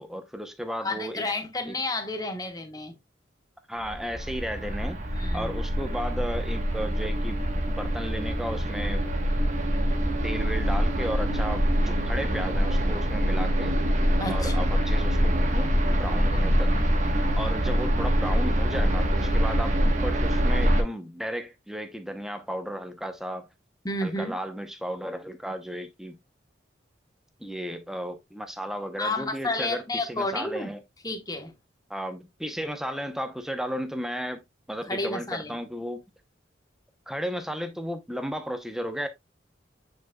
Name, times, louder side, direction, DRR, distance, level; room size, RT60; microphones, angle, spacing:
voice 1, 0.0-1.3 1.7-1.8 3.7-5.0 5.3-7.4 7.7-9.1 10.2-13.7 14.3-16.7 17.4-23.5 24.0-26.2 27.4-30.8 31.9-34.4 34.7-36.0 37.1-39.1, equal, ahead, 0.7 m, -34 dB
voice 2, 0.8-2.9 5.1-5.5 14.2-14.7 16.4-16.5 23.8-24.4 29.0-30.7 31.0-31.5 34.9-35.6, left 2 dB, 20° left, 1.1 m, -31 dB
sound 1, 3.8-20.8, equal, 40° right, 1.1 m, -25 dB
9.0 x 4.8 x 2.2 m
head